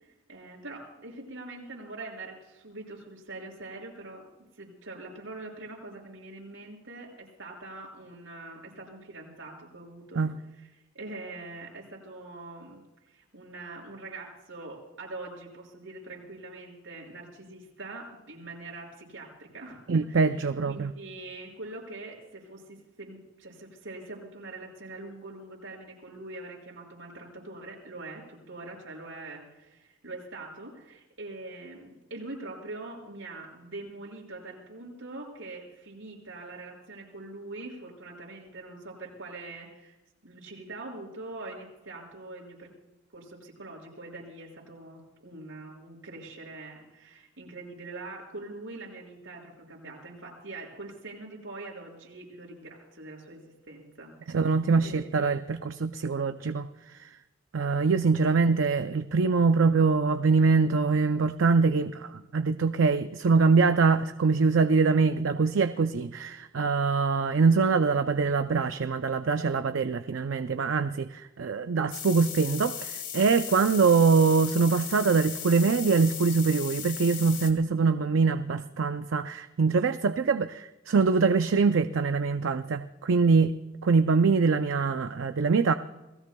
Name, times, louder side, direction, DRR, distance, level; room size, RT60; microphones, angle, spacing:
voice 1, 0.3-4.3 4.6-10.7 10.9-12.8 13.1-20.2 20.6-39.9 40.2-42.7 43.1-54.4 54.8-55.2, right 2 dB, 90° right, 6.0 m, -43 dB
voice 2, 19.9-20.9 54.3-56.7 57.0-57.1 57.5-83.5 83.8-85.7, right 4 dB, 70° right, 0.5 m, -24 dB
sound 1, 71.9-77.5, left 8 dB, 45° left, 2.1 m, -37 dB
29.0 x 19.0 x 2.3 m
head